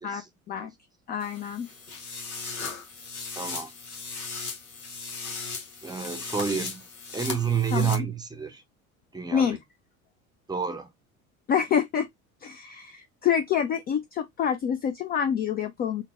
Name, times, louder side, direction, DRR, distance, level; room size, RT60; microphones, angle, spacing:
voice 1, 1.1-1.7 7.7-8.1 9.3-9.6 11.5-12.1 12.4-16.0, left 8 dB, 25° left, 0.3 m, -27 dB
sound 1, 1.2-7.9, left 4 dB, 85° left, 0.9 m, -37 dB
voice 2, 3.4-3.7 5.8-6.9 7.1-8.6 9.1-9.6 10.5-10.9, right 6 dB, 10° right, 0.7 m, -29 dB
3.8 x 2.1 x 3.3 m
figure-of-eight pair, 65°, 42 cm